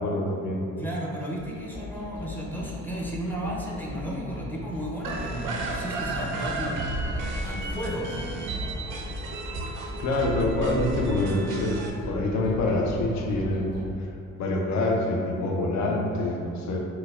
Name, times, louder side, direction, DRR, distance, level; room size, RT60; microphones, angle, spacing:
voice 1, 0.0-0.7 10.0-11.8 12.1-14.1 14.4-16.8, left 2 dB, 65° left, 0 dB, 0.6 m, -26 dB
voice 2, 0.8-6.9 7.4-8.2, equal, 5° left, -4 dB, 0.5 m, -33 dB
sound 1, 1.4-13.9, left 2 dB, 40° left, 1.1 m, -38 dB
sound 2, 5.0-11.9, right 3 dB, 85° right, 0.5 m, -34 dB
4.4 x 2.2 x 2.4 m, 2.4 s
cardioid pair, 90°, 30 cm